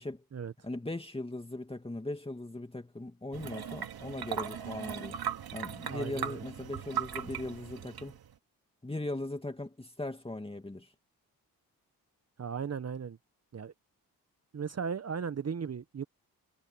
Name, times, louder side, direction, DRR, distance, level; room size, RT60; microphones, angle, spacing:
voice 1, 0.6-5.2 5.5-8.2 8.8-10.9, left 2 dB, 15° left, 2.4 m, -39 dB
sound 1, 3.3-8.3, right 8 dB, 70° right, 2.9 m, -38 dB
voice 2, 5.9-6.4 12.4-13.2 13.5-13.7 14.5-16.0, right 6 dB, 40° right, 1.1 m, -36 dB
supercardioid pair, 55°, 39 cm